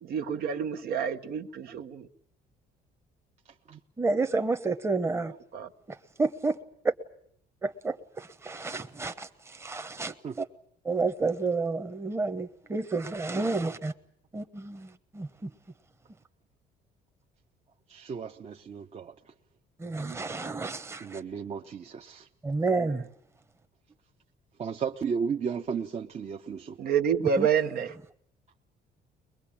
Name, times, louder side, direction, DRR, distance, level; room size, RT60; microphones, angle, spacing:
voice 1, 0.0-2.1 5.5-5.7 20.0-20.2 26.8-27.9, right 7 dB, 65° right, 6 dB, 1.1 m, -28 dB
voice 2, 4.0-5.3 5.9-6.6 7.6-10.4 10.8-13.9 14.3-15.5 19.8-21.2 22.4-23.0 27.4-27.5, right 3 dB, 15° right, 8 dB, 1.1 m, -30 dB
voice 3, 17.9-19.1 21.0-22.3 24.6-26.8, right 6 dB, 40° right, 2 dB, 1.0 m, -34 dB
22.0 x 21.5 x 8.7 m, 0.67 s
cardioid pair, 110°, 17 cm